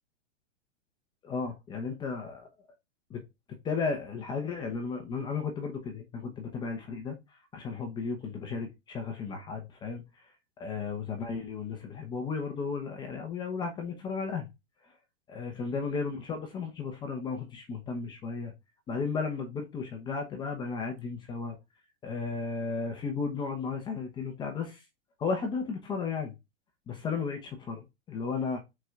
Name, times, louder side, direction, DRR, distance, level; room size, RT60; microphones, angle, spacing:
voice 1, 1.2-2.5 3.1-3.2 3.6-7.2 7.5-10.0 10.6-14.5 15.3-18.5 18.9-21.6 22.0-24.8 25.2-26.3 26.9-28.6, left 5 dB, 15° left, 0.9 m, -34 dB
6.0 x 4.6 x 3.7 m
supercardioid pair, 165°, 36 cm